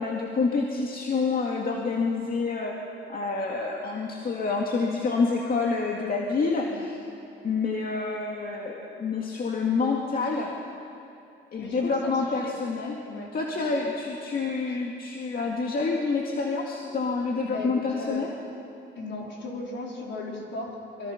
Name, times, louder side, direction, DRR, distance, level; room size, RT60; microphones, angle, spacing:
voice 1, 0.0-2.7 3.1-7.0 7.4-10.5 11.5-13.0 13.3-18.3, left 4 dB, 45° left, 0 dB, 2.2 m, -27 dB
voice 2, 11.6-12.6 13.0-13.3 17.4-18.3 19.0-21.1, left 2 dB, 65° left, -2 dB, 4.7 m, -36 dB
23.5 x 23.5 x 6.0 m, 2.7 s
cardioid pair, 90°, 20 cm